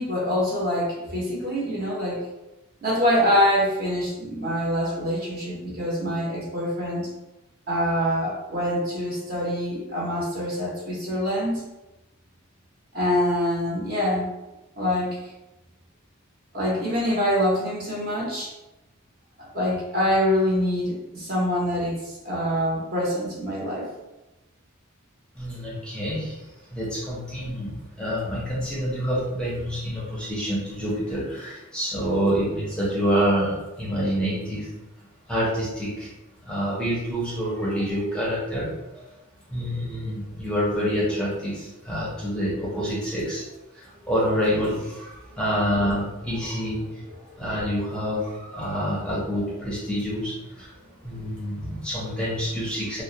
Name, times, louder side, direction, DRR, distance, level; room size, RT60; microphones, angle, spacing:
voice 1, 0.0-2.2 2.8-7.1 7.7-11.6 12.9-14.3 14.8-15.3 16.5-18.5 19.4-23.9 46.5-47.7, equal, 45° right, -5 dB, 0.8 m, -25 dB
voice 2, 25.4-26.3 26.7-34.7 35.3-36.1 36.4-39.0 39.5-46.8 47.4-50.7 51.0-53.0, equal, 5° left, -7 dB, 0.6 m, -27 dB
2.3 x 2.0 x 2.7 m, 0.99 s
head